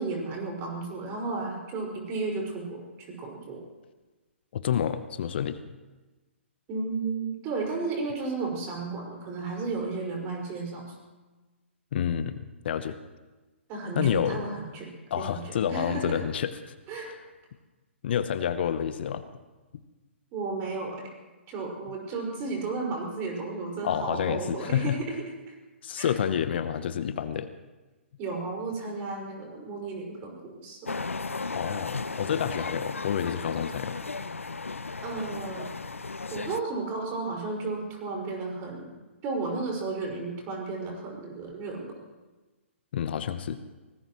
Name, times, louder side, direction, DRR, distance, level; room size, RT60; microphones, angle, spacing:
voice 1, 0.0-2.8 3.2-3.6 6.7-10.9 13.7-16.2 16.9-17.1 20.3-21.1 21.5-25.5 26.0-26.1 28.2-31.0 35.0-35.7 36.3-38.9 39.2-41.9, right 3 dB, 30° right, -1 dB, 5.2 m, -33 dB
voice 2, 4.5-5.6 11.9-13.0 14.0-14.4 15.1-16.5 18.0-19.2 23.8-25.0 25.8-27.5 31.5-34.0 42.9-43.6, left 8 dB, 50° left, 12 dB, 0.9 m, -29 dB
sound 1, 30.9-36.6, left 4 dB, 85° left, 0.7 m, -35 dB
24.5 x 19.0 x 3.1 m, 1.2 s
figure-of-eight pair, 130°, 7 cm